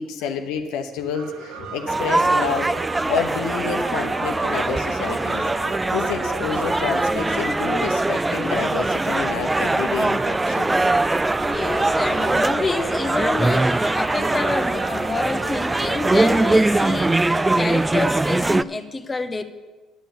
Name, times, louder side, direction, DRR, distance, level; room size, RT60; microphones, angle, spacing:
voice 1, 0.0-2.7 3.1-5.4 5.9-10.7, left 6 dB, 80° left, 0.9 m, -28 dB
sound 1, 1.1-17.6, right 6 dB, 75° right, 1.0 m, -35 dB
sound 2, 1.9-18.6, right 2 dB, 15° right, 0.3 m, -22 dB
voice 2, 11.4-19.4, left 3 dB, 30° left, 0.9 m, -28 dB
10.0 x 7.0 x 7.2 m
hypercardioid pair, 60°, 0 cm